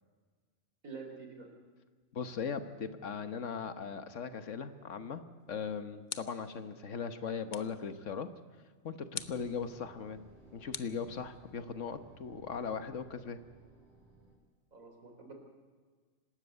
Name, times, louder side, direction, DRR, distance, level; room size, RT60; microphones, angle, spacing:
voice 1, 0.8-1.5 14.7-15.3, right 4 dB, 85° right, 3 dB, 4.0 m, -47 dB
voice 2, 2.1-8.3 8.8-10.2 10.5-13.4, left 6 dB, 65° left, 10 dB, 1.5 m, -39 dB
sound 1, 5.4-6.6 7.5-7.9 9.1-9.5 10.7-11.6, left 6 dB, 40° left, 0.8 m, -44 dB
sound 2, 9.2-14.4, right 2 dB, 55° right, 5.7 m, -59 dB
26.0 x 13.0 x 8.0 m, 1.5 s
omnidirectional pair, 1.4 m